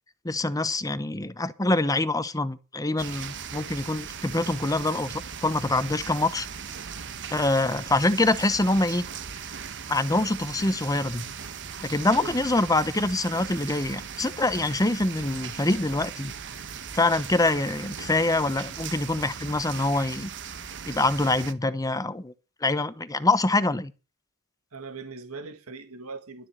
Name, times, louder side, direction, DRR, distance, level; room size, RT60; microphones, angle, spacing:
voice 1, 0.2-5.1 5.4-6.5 7.3-9.0 9.9-11.3 11.8-16.3 16.9-20.3 20.9-22.3 22.6-23.9, left 2 dB, 15° left, 0.9 m, -25 dB
sound 1, 3.0-21.5, right 7 dB, 55° right, 1.2 m, -38 dB
voice 2, 12.2-12.6 24.7-26.5, right 4 dB, 70° right, 2.2 m, -40 dB
12.0 x 7.0 x 7.9 m
head